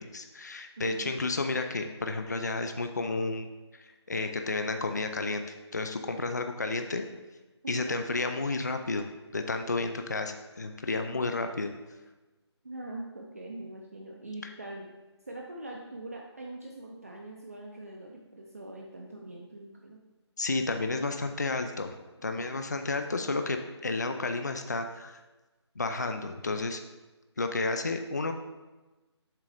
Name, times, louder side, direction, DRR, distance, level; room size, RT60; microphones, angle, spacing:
voice 1, 0.0-3.5 4.1-5.4 5.7-7.0 7.7-9.1 9.3-11.7 20.4-21.9 22.2-25.2 25.8-26.8 27.4-28.3, left 3 dB, 40° left, 6 dB, 0.4 m, -31 dB
voice 2, 0.8-1.3 7.6-8.0 12.6-14.9 15.3-20.0 22.2-22.5, right 1 dB, 30° right, -1 dB, 0.5 m, -43 dB
7.4 x 3.8 x 4.9 m, 1.2 s
figure-of-eight pair, 175°, 15 cm